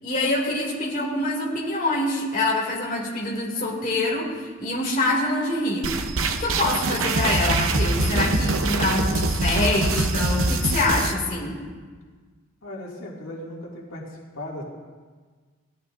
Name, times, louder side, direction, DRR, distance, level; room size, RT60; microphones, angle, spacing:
voice 1, 0.0-5.9 6.3-11.6, left 2 dB, 40° left, -3 dB, 2.4 m, -25 dB
sound 1, 5.8-11.1, right 2 dB, 80° right, 0.8 m, -23 dB
voice 2, 12.6-14.6, left 1 dB, 85° left, -3 dB, 2.2 m, -37 dB
17.5 x 13.5 x 2.5 m, 1.5 s
head